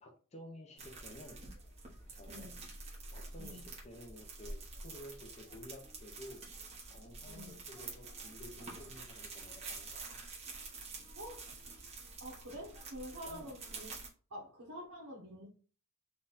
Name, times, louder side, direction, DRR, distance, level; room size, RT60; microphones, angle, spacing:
voice 1, 0.0-1.4 2.0-2.5 3.1-6.4 6.8-10.2 13.2-13.5, left 1 dB, 30° left, 2 dB, 0.6 m, -52 dB
sound 1, 0.8-14.1, right 3 dB, 30° right, 1.1 m, -48 dB
voice 2, 2.3-2.6 3.4-3.7 7.3-7.6 11.2-11.4 12.2-13.9 14.3-15.5, equal, 70° right, -4 dB, 1.0 m, -47 dB
4.2 x 2.4 x 4.0 m, 0.39 s
head